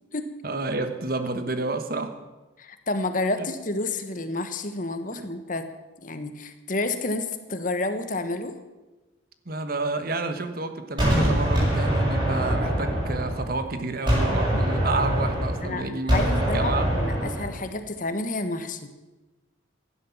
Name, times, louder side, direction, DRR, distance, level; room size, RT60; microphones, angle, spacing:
voice 1, 0.4-2.2 3.4-3.5 5.1-5.3 9.4-16.9, right 3 dB, 50° right, 9 dB, 1.3 m, -30 dB
voice 2, 2.6-5.7 6.0-8.5 15.6-18.9, left 2 dB, 45° left, 9 dB, 1.3 m, -30 dB
Gunshot gunfire, 11.0-13.7 14.1-17.6, equal, 25° right, 6.8 m, -24 dB
15.5 x 11.0 x 7.3 m, 1.1 s
head